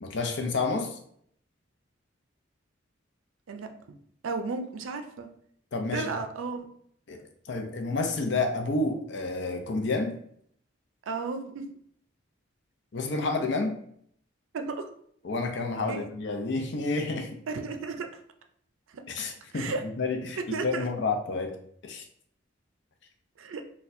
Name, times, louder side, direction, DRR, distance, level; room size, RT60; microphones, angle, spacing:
voice 1, 0.0-1.0 5.7-6.1 7.1-10.1 12.9-13.7 15.2-17.3 19.1-21.5 21.8-22.0, left 3 dB, 60° left, 4 dB, 0.5 m, -30 dB
voice 2, 4.2-5.3 5.9-6.7 11.1-11.7 14.5-14.9 15.9-16.1 17.5-18.1 18.9-19.3 19.5-19.8 20.4-20.9 23.4-23.6, right 4 dB, 85° right, 6 dB, 0.4 m, -33 dB
4.2 x 2.2 x 2.6 m, 0.65 s
head